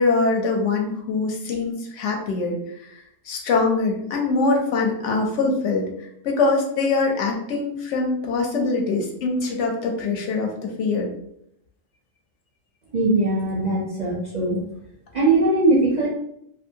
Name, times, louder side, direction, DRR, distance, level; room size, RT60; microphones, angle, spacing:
voice 1, 0.0-2.6 2.8-3.0 3.3-5.9 6.2-11.1, left 3 dB, 75° left, 1 dB, 0.9 m, -23 dB
voice 2, 12.9-14.6 15.1-16.1, right 2 dB, 55° right, -4 dB, 0.4 m, -20 dB
2.6 x 2.5 x 2.7 m, 0.75 s
omnidirectional pair, 1.3 m